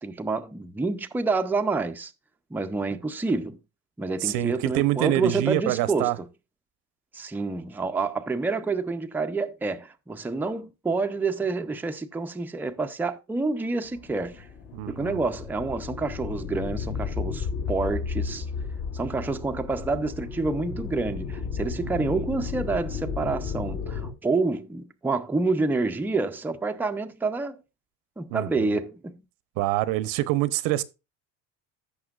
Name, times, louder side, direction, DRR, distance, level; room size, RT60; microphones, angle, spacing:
voice 1, 0.0-2.1 2.5-3.6 4.0-6.1 7.1-14.5 14.9-18.5 18.9-27.6 28.2-29.1, right 3 dB, 5° right, 0.5 m, -28 dB
voice 2, 4.2-6.2 14.7-15.2 28.3-28.8 29.6-30.8, right 16 dB, 85° right, 0.8 m, -26 dB
sound 1, 13.9-24.1, left 5 dB, 55° left, 3.0 m, -33 dB
14.5 x 6.0 x 2.4 m
cardioid pair, 135°, 33 cm